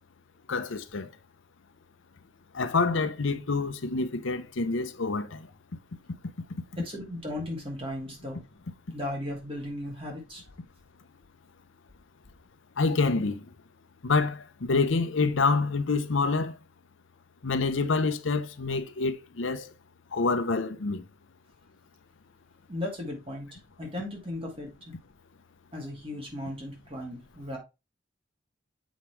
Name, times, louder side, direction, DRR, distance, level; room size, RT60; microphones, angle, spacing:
voice 1, 0.5-1.1 2.5-5.5 12.8-13.5 14.0-16.6 17.4-19.7 20.1-21.0, left 4 dB, 80° left, 0.7 m, -27 dB
voice 2, 6.8-8.5 8.9-10.4 22.7-24.9 25.7-27.6, left 1 dB, 30° right, 2.3 m, -36 dB
7.2 x 5.3 x 3.2 m
head